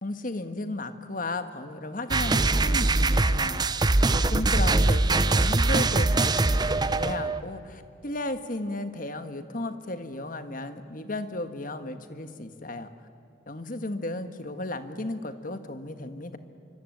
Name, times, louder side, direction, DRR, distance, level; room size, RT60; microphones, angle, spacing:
voice 1, 0.0-3.8 4.1-12.9 13.5-16.4, left 2 dB, 45° left, 9 dB, 1.5 m, -34 dB
sound 1, 2.1-7.4, right 2 dB, 20° right, 0.6 m, -22 dB
26.0 x 25.0 x 9.2 m, 2.5 s
head